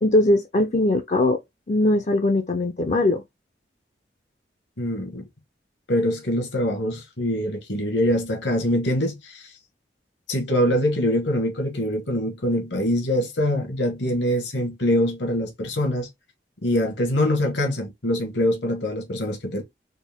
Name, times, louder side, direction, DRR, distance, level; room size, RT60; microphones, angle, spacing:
voice 1, 0.0-1.4 1.7-3.2, left 2 dB, 40° left, 0.5 m, -20 dB
voice 2, 4.8-5.2 5.9-9.4 10.3-16.1 16.6-19.6, left 1 dB, 75° left, 1.4 m, -24 dB
4.2 x 2.6 x 3.5 m
head